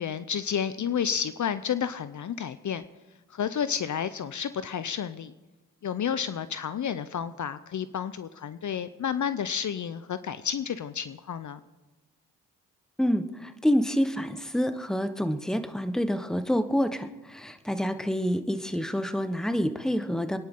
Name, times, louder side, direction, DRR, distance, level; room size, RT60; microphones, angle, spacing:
voice 1, 0.0-2.8 3.3-5.3 5.8-11.6, left 8 dB, 45° left, 13 dB, 0.8 m, -31 dB
voice 2, 13.0-20.4, equal, ahead, 10 dB, 1.2 m, -27 dB
24.5 x 10.5 x 3.8 m, 1.1 s
supercardioid pair, 50°, 41 cm